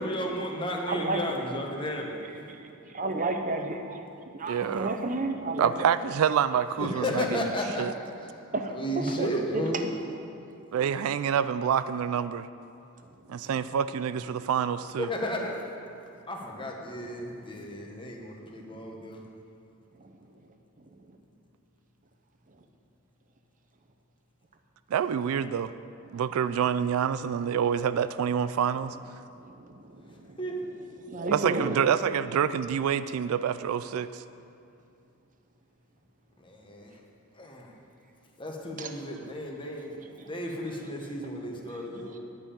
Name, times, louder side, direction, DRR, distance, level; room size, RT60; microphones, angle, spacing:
voice 1, 0.0-2.4 6.8-7.9 8.2-9.8 15.0-15.6 16.3-19.2 30.4-30.6 36.4-37.0 37.3-37.7 38.4-39.9 40.3-42.2, equal, 20° left, 0 dB, 1.1 m, -33 dB
voice 2, 0.9-1.2 2.5-4.0 4.3-5.9 8.5-8.8 9.2-9.6 20.0-20.1 21.1-21.2 29.4-30.4 31.0-31.7 38.8-38.9 40.2-40.3 42.1-42.2, right 2 dB, 35° right, 5 dB, 0.8 m, -32 dB
voice 3, 4.5-4.9 5.6-7.5 7.8-7.9 10.7-12.5 13.3-15.1 24.9-25.7 26.1-29.0 31.3-34.2, right 8 dB, 65° right, 15 dB, 0.3 m, -27 dB
10.5 x 5.6 x 8.5 m, 2.6 s
head